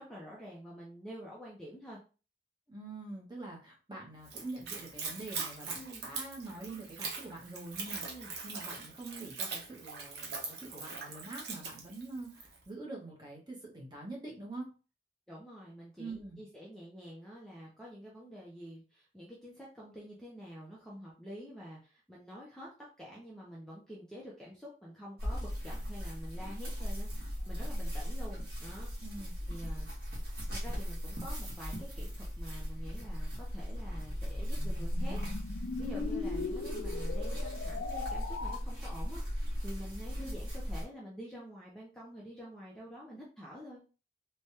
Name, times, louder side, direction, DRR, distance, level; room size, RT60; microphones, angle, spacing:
voice 1, 0.0-2.0 5.7-6.0 8.1-8.3 15.3-22.7 23.0-27.1 27.5-28.9 29.5-29.9 30.6-35.2 35.4-43.8, equal, 5° left, -5 dB, 0.5 m, -48 dB
voice 2, 2.7-14.7 16.0-16.4 29.0-29.3, right 2 dB, 25° right, -2 dB, 0.9 m, -45 dB
Splash splatter / Trickle dribble, 4.2-12.6, right 4 dB, 70° right, 0.8 m, -42 dB
sound 1, 25.2-40.8, equal, 55° right, 1.4 m, -37 dB
sound 2, 34.1-38.6, left 4 dB, 70° left, 0.3 m, -39 dB
3.3 x 2.2 x 2.8 m, 0.34 s
head